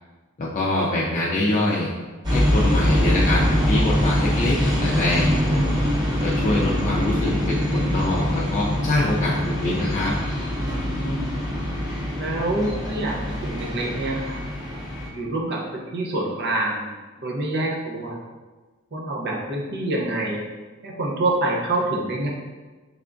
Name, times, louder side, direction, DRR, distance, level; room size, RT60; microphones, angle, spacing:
voice 1, 0.4-1.9 2.3-5.3 6.2-10.1, left 1 dB, 40° left, -5 dB, 0.4 m, -24 dB
sound 1, 2.2-15.1, equal, 20° right, 0.8 m, -24 dB
voice 2, 5.0-5.8 10.5-11.3 12.2-14.4 15.1-16.9 17.2-18.2 18.9-20.4 20.8-22.3, right 2 dB, 55° right, -2 dB, 0.7 m, -27 dB
3.5 x 3.4 x 2.5 m, 1.3 s
head